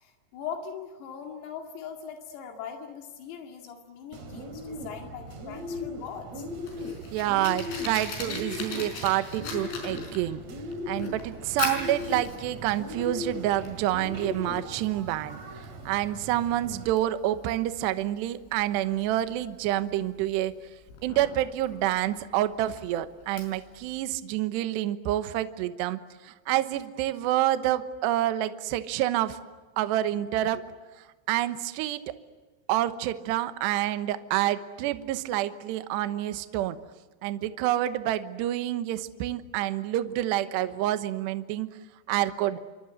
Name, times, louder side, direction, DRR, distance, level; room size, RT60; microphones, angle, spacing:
voice 1, 0.0-6.5, left 7 dB, 85° left, 3 dB, 5.1 m, -40 dB
Bird, 4.1-16.8, left 2 dB, 40° right, 3.0 m, -38 dB
Fire, 6.3-24.0, left 4 dB, 60° left, 7.0 m, -41 dB
voice 2, 7.1-10.4 10.9-20.5 21.0-29.4 29.8-30.6 31.3-32.1 32.7-36.8 37.2-41.7 42.1-42.6, right 13 dB, 75° right, 10 dB, 2.8 m, -28 dB
28.5 x 25.0 x 8.0 m, 1.3 s
omnidirectional pair, 5.9 m